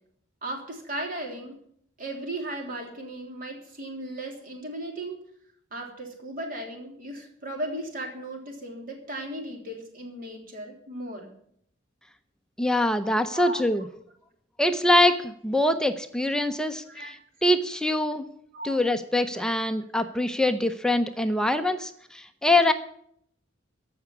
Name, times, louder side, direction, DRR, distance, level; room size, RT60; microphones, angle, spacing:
voice 1, 0.4-1.6 2.0-5.2 5.7-11.3 13.3-13.6 16.8-17.1 18.5-18.8 19.4-19.6, right 1 dB, 45° right, 1 dB, 3.4 m, -36 dB
voice 2, 12.6-13.9 14.6-17.2 17.4-18.2 18.6-22.7, left 1 dB, 5° left, 7 dB, 0.6 m, -24 dB
14.5 x 5.9 x 9.6 m, 0.67 s
head